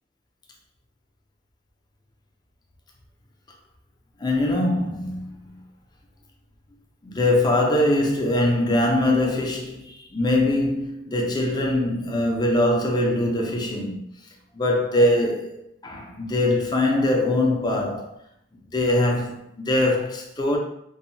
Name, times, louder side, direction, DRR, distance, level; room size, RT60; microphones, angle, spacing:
voice 1, 4.2-5.6 7.0-14.0 14.5-18.1 18.7-20.6, left 1 dB, 25° left, 0.4 m, -22 dB
2.7 x 2.1 x 2.6 m
head